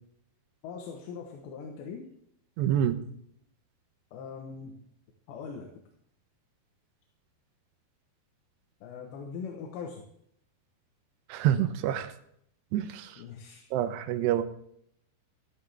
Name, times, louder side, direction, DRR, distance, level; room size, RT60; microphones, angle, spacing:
voice 1, 0.6-2.1 4.1-4.8 5.3-5.8 8.8-10.1 13.2-13.7, left 6 dB, 85° left, 1 dB, 3.4 m, -41 dB
voice 2, 2.6-3.0 11.3-12.1 12.7-13.1 13.7-14.4, right 11 dB, 80° right, 9 dB, 2.9 m, -27 dB
13.5 x 12.0 x 3.5 m, 0.70 s
omnidirectional pair, 4.9 m